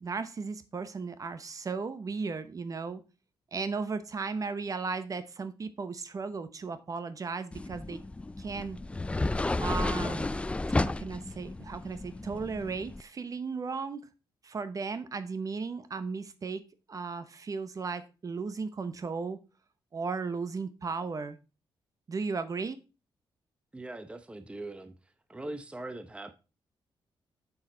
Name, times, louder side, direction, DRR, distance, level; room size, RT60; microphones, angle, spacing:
voice 1, 0.0-3.0 3.5-8.0 8.4-8.8 9.6-10.5 10.8-14.1 14.4-16.6 16.9-19.4 19.9-21.4 22.1-22.8, right 4 dB, 40° right, 0.9 m, -35 dB
sound 1, 7.5-13.0, left 2 dB, 15° left, 0.3 m, -32 dB
voice 2, 23.7-26.3, right 2 dB, 10° right, 0.8 m, -41 dB
7.3 x 6.5 x 3.9 m
cardioid pair, 100°, 9 cm